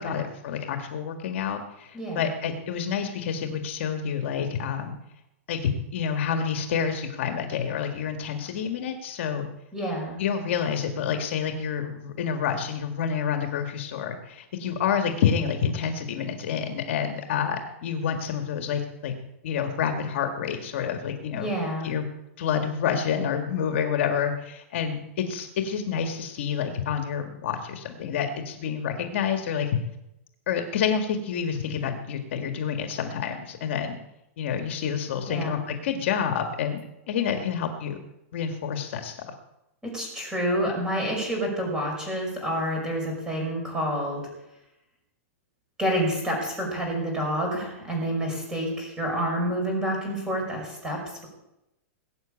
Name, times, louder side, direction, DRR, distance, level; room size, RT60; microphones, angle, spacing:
voice 1, 0.0-5.0 5.5-9.5 10.2-19.1 19.4-21.5 21.8-22.1 22.4-29.7 30.5-34.0 34.4-36.8 37.1-38.0 38.3-39.2, left 7 dB, 55° left, 5 dB, 1.8 m, -28 dB
voice 2, 9.7-10.2 21.3-21.9 35.3-35.6 39.8-44.2 45.8-51.3, equal, 10° right, 0 dB, 5.4 m, -28 dB
19.5 x 8.0 x 8.8 m, 0.89 s
supercardioid pair, 170°, 8 cm